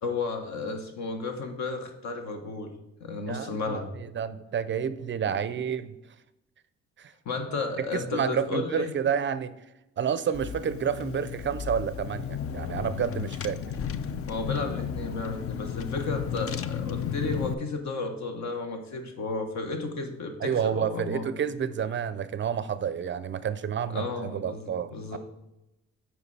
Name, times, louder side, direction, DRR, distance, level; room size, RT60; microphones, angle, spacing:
voice 1, 0.0-2.7 3.0-3.9 7.2-8.9 14.3-21.3 23.9-25.2, left 3 dB, 65° left, 5 dB, 1.3 m, -33 dB
voice 2, 3.3-5.9 7.0-7.1 7.8-9.7 10.0-13.7 20.4-25.2, right 8 dB, 40° right, 14 dB, 0.4 m, -30 dB
Car / Engine, 10.3-17.5, left 8 dB, 50° left, 0.5 m, -33 dB
8.1 x 4.9 x 4.2 m, 0.90 s
cardioid pair, 90°, 30 cm